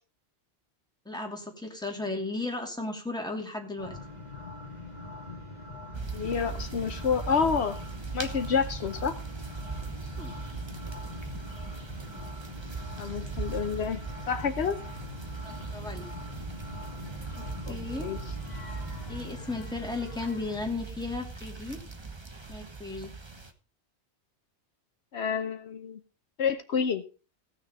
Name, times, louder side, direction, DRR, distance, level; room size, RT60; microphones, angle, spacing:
voice 1, 1.0-4.0 10.2-10.4 15.4-16.1 17.3-18.1 19.1-21.8 22.5-23.1, left 3 dB, 5° left, 1 dB, 2.6 m, -35 dB
sound 1, 3.8-20.7, left 2 dB, 40° left, 2.1 m, -43 dB
sound 2, 5.9-23.5, right 4 dB, 25° right, 1.1 m, -39 dB
voice 2, 6.1-7.8 8.1-9.2 13.0-14.0 14.3-14.8 17.6-18.2 25.1-26.0 26.4-27.0, left 6 dB, 70° left, 9 dB, 1.1 m, -29 dB
16.0 x 6.6 x 5.3 m, 0.35 s
omnidirectional pair, 1.1 m